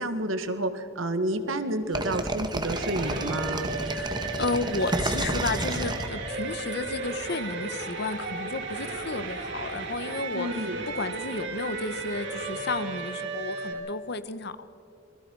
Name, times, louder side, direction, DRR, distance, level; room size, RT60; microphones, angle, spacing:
voice 1, 0.0-3.8 10.3-10.8, right 1 dB, 90° right, 8 dB, 1.9 m, -30 dB
sound 1, 1.9-6.7, right 1 dB, 20° right, 1.6 m, -30 dB
sound 2, 2.7-13.7, right 3 dB, 65° right, 3.8 m, -35 dB
voice 2, 3.9-10.5 10.9-14.7, left 3 dB, 55° left, 13 dB, 1.1 m, -32 dB
27.0 x 22.0 x 4.8 m, 2.7 s
head